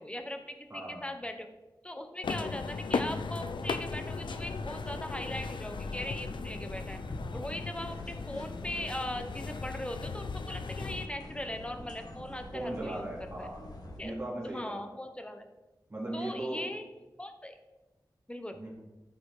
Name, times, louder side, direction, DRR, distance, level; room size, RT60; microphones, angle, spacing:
voice 1, 0.0-1.5 1.8-7.0 7.3-13.0 13.4-13.5 14.0-14.1 14.4-15.4 16.1-16.8 17.2-17.6 18.3-18.6, left 1 dB, 15° left, 6 dB, 1.0 m, -39 dB
voice 2, 0.7-1.0 12.5-13.6 14.0-14.8 15.9-16.6 18.5-18.7, right 1 dB, 30° right, -6 dB, 2.8 m, -38 dB
sound 1, 2.2-11.1, left 4 dB, 85° left, 0.5 m, -37 dB
sound 2, 3.5-14.0, left 1 dB, 55° left, 1.7 m, -45 dB
14.0 x 5.0 x 4.9 m, 1.1 s
wide cardioid pair, 95°, 8 cm